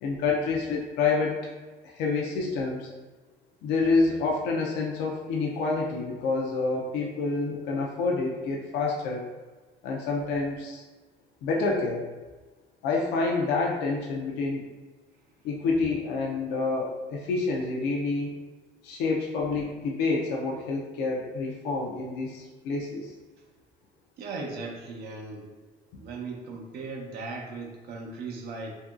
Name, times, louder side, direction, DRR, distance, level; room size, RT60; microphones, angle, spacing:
voice 1, 0.0-1.4 1.8-2.9 3.6-9.2 9.8-10.8 11.4-12.1 12.8-14.6 15.4-18.3 18.8-23.1, left 3 dB, 90° left, -1 dB, 0.4 m, -28 dB
voice 2, 24.2-25.5 26.0-28.8, right 3 dB, 75° right, 0 dB, 0.6 m, -37 dB
2.8 x 2.6 x 2.3 m, 1.3 s
cardioid pair, 110°, 17 cm